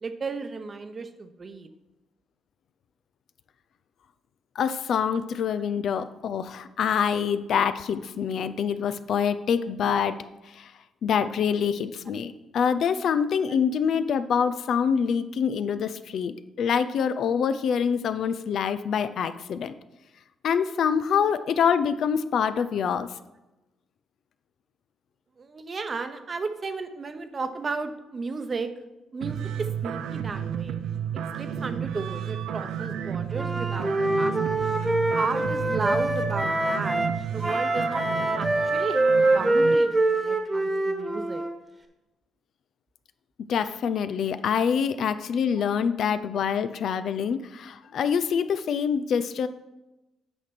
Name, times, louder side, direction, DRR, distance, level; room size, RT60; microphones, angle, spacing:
voice 1, 0.0-1.7 25.4-28.7 29.1-30.8 31.4-34.6 35.1-37.0 37.3-38.1 38.4-41.4, right 4 dB, 35° right, 9 dB, 0.8 m, -34 dB
voice 2, 4.6-10.7 11.0-19.7 20.4-23.1 43.5-49.5, left 7 dB, 65° left, 12 dB, 0.5 m, -25 dB
sound 1, 29.2-39.8, right 8 dB, 80° right, 0.5 m, -32 dB
Wind instrument woodwind instrument, 33.3-37.2 37.4-41.5, right 2 dB, 20° right, 1.3 m, -25 dB
8.6 x 5.0 x 6.1 m, 1.0 s
cardioid pair, 90°, 0 cm